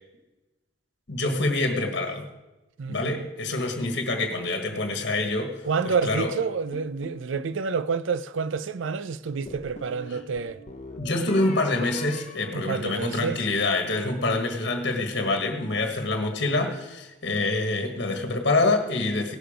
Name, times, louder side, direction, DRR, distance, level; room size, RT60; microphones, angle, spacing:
voice 1, 1.1-2.3 2.9-6.3 10.1-10.2 10.9-19.4, left 2 dB, 60° left, 1.4 m, -26 dB
voice 2, 2.8-3.3 5.7-10.6 12.5-13.4, right 5 dB, 80° right, 0.5 m, -28 dB
sound 1, 6.7-7.6 9.5-13.2, left 3 dB, 35° left, 0.8 m, -43 dB
17.5 x 6.8 x 5.1 m
head